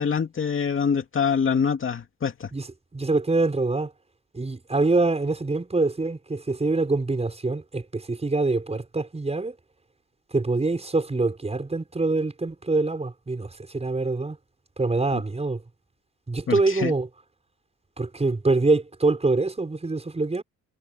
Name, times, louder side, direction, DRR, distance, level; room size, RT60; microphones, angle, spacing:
voice 1, 0.0-2.5 15.1-15.2 16.5-16.9, left 6 dB, 40° left, 2.5 m, -25 dB
voice 2, 2.9-3.9 4.3-9.5 10.3-14.4 14.8-15.6 16.3-17.1 18.0-20.4, right 3 dB, 20° right, 6.6 m, -25 dB
cardioid pair, 130°, 32 cm